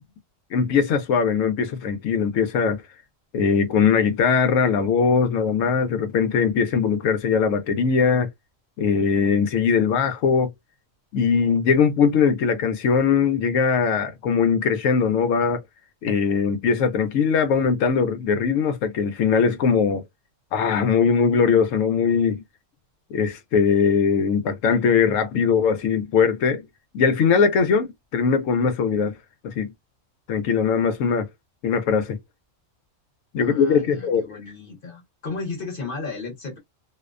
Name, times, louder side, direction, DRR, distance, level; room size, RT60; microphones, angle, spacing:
voice 1, 0.5-2.8 3.3-8.3 8.8-10.5 11.1-15.6 16.0-20.0 20.5-22.4 23.1-26.7 26.9-29.1 29.4-29.7 30.3-31.3 31.6-32.2 33.3-34.2, left 6 dB, 90° left, 1.0 m, -20 dB
voice 2, 33.3-36.6, left 4 dB, 50° left, 1.0 m, -34 dB
2.5 x 2.1 x 2.3 m
omnidirectional pair, 1.3 m